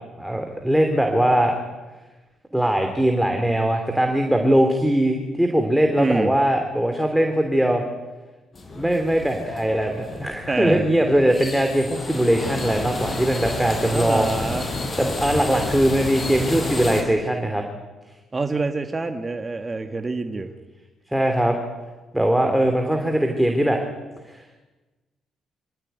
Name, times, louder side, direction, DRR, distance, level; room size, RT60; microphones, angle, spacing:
voice 1, 0.2-1.5 2.5-7.8 8.7-14.3 15.0-17.6 21.1-21.6 22.1-23.8 24.3-24.4, right 1 dB, 5° right, 4 dB, 3.1 m, -21 dB
voice 2, 6.0-6.3 10.5-10.8 13.9-14.7 18.3-20.5, right 3 dB, 25° right, 5 dB, 1.7 m, -26 dB
sound 1, 8.5-17.0, left 2 dB, 35° left, 5.3 m, -31 dB
25.5 x 16.5 x 9.4 m, 1.2 s
cardioid pair, 90°, 0 cm